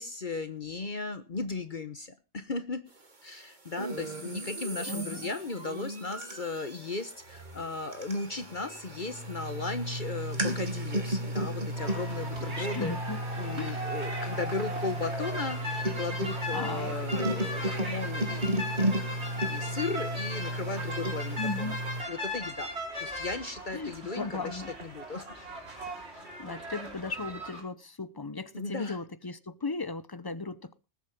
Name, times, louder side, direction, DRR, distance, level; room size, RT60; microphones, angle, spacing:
voice 1, 0.0-2.8 3.2-12.9 13.4-18.5 19.5-21.8 22.1-22.7 23.0-25.3 28.5-29.0, left 3 dB, 45° left, 1.2 m, -36 dB
sound 1, 3.7-22.0, right 1 dB, 40° right, 2.1 m, -34 dB
voice 2, 4.9-5.3 12.6-13.2 13.6-13.8 16.5-16.9 21.4-21.8 23.7-24.7 26.4-30.7, left 3 dB, 25° left, 0.7 m, -36 dB
sound 2, 11.8-27.6, equal, 65° right, 3.8 m, -38 dB
20.0 x 7.7 x 5.3 m
omnidirectional pair, 1.2 m